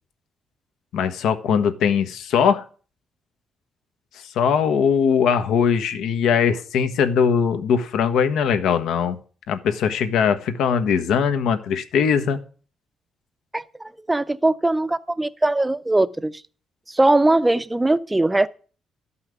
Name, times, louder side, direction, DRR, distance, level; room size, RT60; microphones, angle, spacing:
voice 1, 0.9-2.6 4.2-9.2 9.5-12.4, left 7 dB, 90° left, 1.2 m, -20 dB
voice 2, 13.5-16.4 16.9-18.5, right 2 dB, 10° right, 0.5 m, -20 dB
12.5 x 5.7 x 8.1 m
cardioid pair, 140°, 0 cm